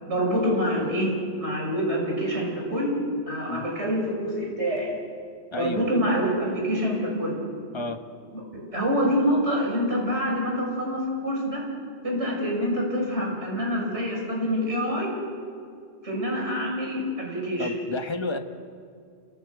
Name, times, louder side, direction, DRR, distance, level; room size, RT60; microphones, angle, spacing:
voice 1, 0.1-2.9 3.3-4.9 5.6-7.4 8.3-8.4 8.7-11.6 12.0-15.1 16.0-17.7, equal, 80° right, -1 dB, 6.0 m, -26 dB
voice 2, 5.5-5.9 7.7-8.0 17.6-18.4, left 2 dB, 25° left, 6 dB, 1.3 m, -30 dB
28.0 x 17.0 x 8.3 m, 2.2 s
omnidirectional pair, 1.1 m